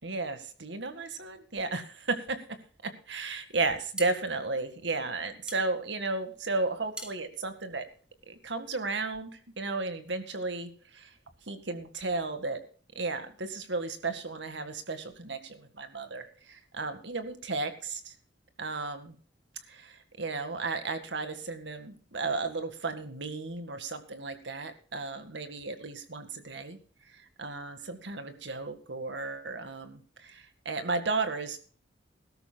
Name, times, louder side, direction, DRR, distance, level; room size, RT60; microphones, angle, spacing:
voice 1, 0.0-2.4 2.8-7.8 8.3-9.3 9.6-11.1 11.5-12.6 13.0-18.1 18.6-19.2 19.7-26.8 27.4-31.6, right 3 dB, 75° right, 8 dB, 1.9 m, -34 dB
sound 1, 4.0-8.5, right 1 dB, 5° right, 1.4 m, -45 dB
20.5 x 13.0 x 2.3 m, 0.39 s
head